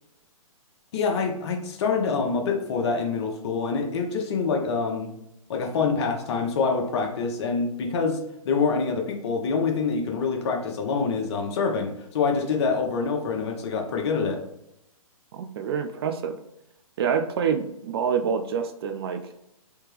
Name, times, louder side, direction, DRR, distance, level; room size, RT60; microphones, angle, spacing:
voice 1, 0.9-5.1 5.5-8.2 8.4-14.4, left 5 dB, 45° left, 2 dB, 0.8 m, -26 dB
voice 2, 15.3-16.4 17.0-19.2, right 7 dB, 45° right, 7 dB, 0.4 m, -27 dB
3.4 x 2.8 x 3.2 m, 0.81 s
hypercardioid pair, 130°, 19 cm